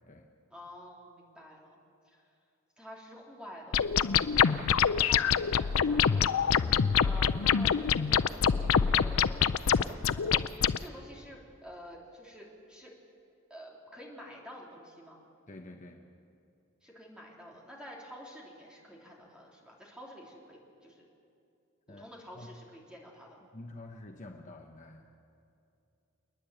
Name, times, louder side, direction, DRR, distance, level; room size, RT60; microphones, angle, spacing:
voice 1, 0.5-1.8 2.0-2.2 2.8-4.6 5.0-6.3 6.5-6.7 7.0-9.6 10.1-10.4 10.8-12.9 13.5-15.2 16.8-21.0 21.9-23.4, equal, 5° right, -3 dB, 3.3 m, -49 dB
sound 1, 3.7-10.8, left 7 dB, 85° left, 0.5 m, -25 dB
voice 2, 6.6-7.0 15.5-16.0 21.9-22.0 22.3-22.5 23.5-25.1, left 2 dB, 35° left, 2 dB, 1.0 m, -47 dB
29.0 x 9.9 x 9.0 m, 2.6 s
head